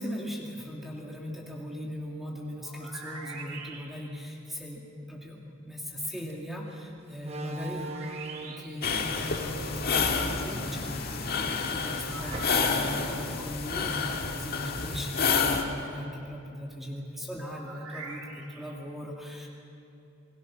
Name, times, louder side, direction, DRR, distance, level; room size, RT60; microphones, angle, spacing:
voice 1, 0.0-8.1 8.4-19.5, equal, ahead, -2 dB, 2.3 m, -39 dB
sound 1, 2.6-4.2 7.8-8.9 12.1-13.3 17.4-18.7, right 4 dB, 90° right, 2.6 m, -44 dB
Slam, 6.1-6.3 7.2-8.8 9.8-11.2 11.6-11.7 12.3-12.9, right 2 dB, 30° right, 1.1 m, -40 dB
sound 2, 8.8-15.6, left 5 dB, 45° left, 1.7 m, -29 dB
28.0 x 21.5 x 6.1 m, 2.8 s
head